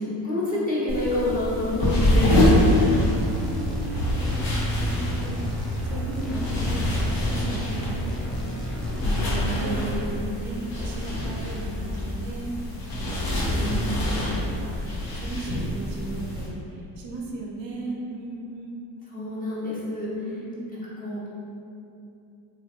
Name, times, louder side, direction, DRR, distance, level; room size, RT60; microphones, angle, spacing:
voice 1, 0.0-2.4 9.0-10.1 13.5-14.1 19.1-20.1 20.7-21.2, left 1 dB, 15° left, -9 dB, 1.0 m, -28 dB
sound 1, 0.9-16.5, left 1 dB, 45° left, 1.0 m, -26 dB
sound 2, 2.3-10.0, left 1 dB, ahead, 0.5 m, -32 dB
voice 2, 2.7-8.4 8.8-9.1 9.5-9.8 10.2-12.5 13.1-13.5 14.2-18.9 20.1-20.6, right 2 dB, 60° right, -1 dB, 0.6 m, -37 dB
2.9 x 2.3 x 2.9 m, 2.7 s
hypercardioid pair, 70°, 49 cm